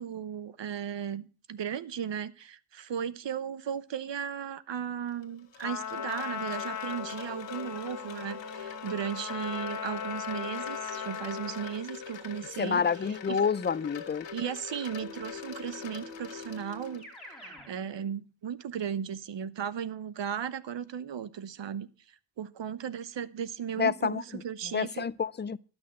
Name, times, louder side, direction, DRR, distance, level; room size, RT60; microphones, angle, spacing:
voice 1, 0.0-12.8 13.1-13.4 14.3-25.1, right 8 dB, 70° right, 0.9 m, -36 dB
Wind chime, 5.1-17.3, left 6 dB, 70° left, 1.7 m, -43 dB
Trumpet, 5.6-11.9, left 8 dB, 40° left, 0.9 m, -38 dB
voice 2, 12.6-14.3 23.8-24.4 24.7-25.6, left 6 dB, 25° left, 0.5 m, -28 dB
Keyboard (musical), 15.0-17.7, left 2 dB, ahead, 3.5 m, -47 dB
12.0 x 6.2 x 7.4 m
cardioid pair, 65°, 45 cm